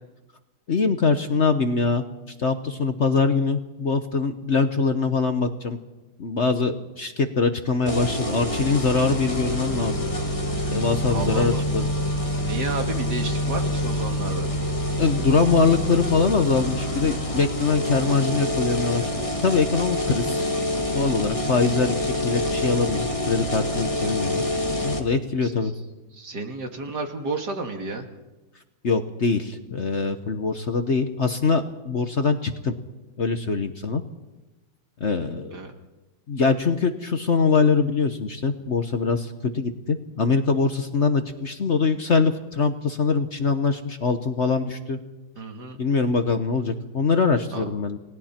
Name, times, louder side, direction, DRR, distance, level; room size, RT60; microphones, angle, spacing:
voice 1, 0.7-2.0 2.4-5.8 6.2-10.0 10.7-11.9 15.0-19.1 19.4-24.4 24.8-25.7 28.8-32.7 33.2-34.0 35.0-35.6 36.3-45.0 45.8-48.0, left 4 dB, 45° left, 7 dB, 1.2 m, -23 dB
sound 1, 7.9-25.0, left 1 dB, 20° left, 2.0 m, -26 dB
voice 2, 11.1-11.6 12.3-14.5 25.4-25.5 26.1-28.1 35.5-35.7 45.4-45.8 47.5-47.7, right 3 dB, 65° right, 4 dB, 2.7 m, -31 dB
29.5 x 19.5 x 4.4 m, 1.1 s
omnidirectional pair, 2.0 m